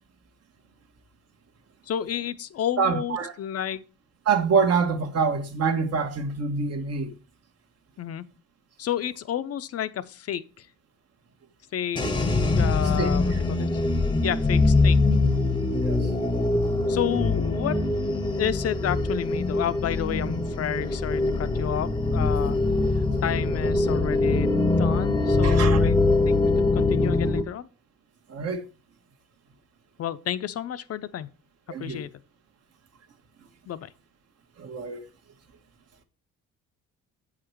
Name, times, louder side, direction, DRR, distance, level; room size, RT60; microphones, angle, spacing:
voice 1, 1.9-3.8 8.0-8.2 8.8-10.7 11.7-12.0 12.6-13.7 14.2-15.0 16.9-22.6 23.2-24.5 24.8-26.0 26.2-27.7 30.0-31.3 31.8-32.1 33.7-33.9, left 10 dB, 50° left, 0.6 m, -31 dB
voice 2, 2.8-3.3 4.3-7.1 13.0-13.4 15.8-16.1 25.4-25.8 28.3-28.6 31.7-32.0 34.6-35.0, right 5 dB, 55° right, 1.3 m, -26 dB
sound 1, 12.0-27.4, left 2 dB, 15° left, 0.8 m, -23 dB
8.1 x 4.9 x 4.5 m
cardioid pair, 90°, 30 cm